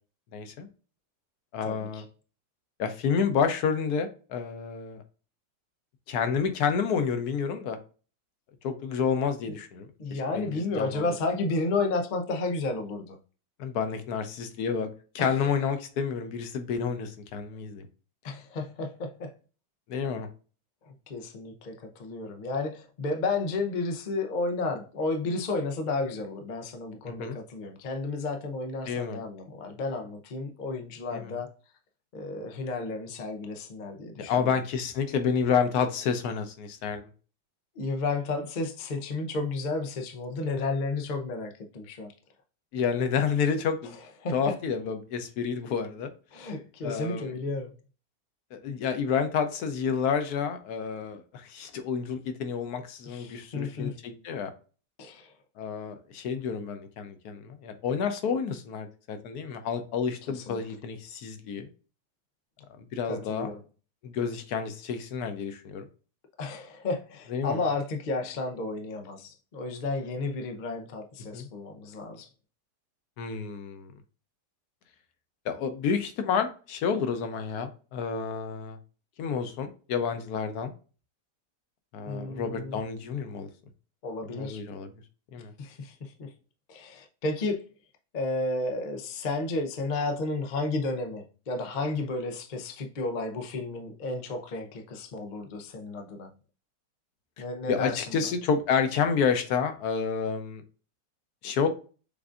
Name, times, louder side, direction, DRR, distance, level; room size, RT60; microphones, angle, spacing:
voice 1, 0.3-0.7 1.5-2.0 2.8-5.0 6.1-7.8 8.6-11.0 13.6-14.9 15.1-17.9 19.9-20.3 27.2-27.4 28.9-29.2 31.1-31.4 34.3-37.1 42.7-43.9 44.3-46.1 46.4-46.5 46.8-47.3 48.5-54.5 55.6-61.7 62.9-63.5 64.0-65.9 67.3-67.6 71.3-71.5 73.2-73.9 75.4-78.8 79.2-80.7 81.9-83.5 84.3-84.9 85.3-85.5 97.7-100.6 101.4-101.7, left 6 dB, 70° left, 1.1 m, -29 dB
voice 2, 1.6-2.0 9.5-9.6 10.0-13.2 15.2-15.5 18.2-19.3 20.8-31.5 32.1-34.6 37.8-42.1 44.2-44.6 46.3-47.7 53.0-53.9 55.0-55.3 60.3-60.6 63.1-63.6 66.4-72.3 82.0-82.8 84.0-84.6 85.6-86.3 86.7-87.7 88.1-96.3 97.4-98.2, left 3 dB, 85° left, 0.4 m, -32 dB
6.8 x 2.5 x 2.4 m
omnidirectional pair, 1.9 m